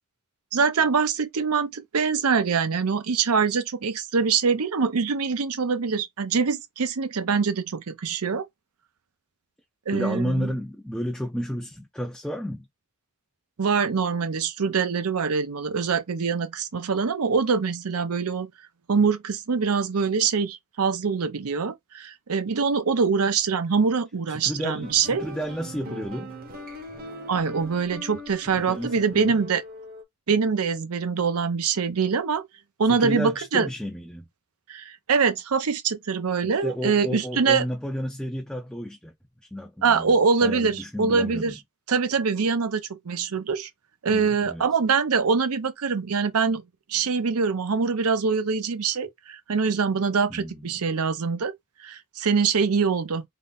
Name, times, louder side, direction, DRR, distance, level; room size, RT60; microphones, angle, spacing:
voice 1, 0.5-8.5 9.9-10.5 13.6-18.5 18.9-25.2 27.3-29.6 30.3-32.5 32.8-33.7 34.7-37.6 39.8-41.5 41.9-43.7 44.0-46.6 46.9-51.5 51.8-53.2, right 5 dB, 85° right, 0.6 m, -24 dB
voice 2, 9.9-12.7 24.3-26.3 28.6-29.4 32.9-34.2 36.4-39.1 39.4-40.1 40.4-41.6 44.1-44.6 50.3-50.7, equal, 5° left, 0.5 m, -32 dB
sound 1, 24.8-30.0, equal, 40° right, 1.0 m, -41 dB
3.8 x 2.1 x 3.8 m
head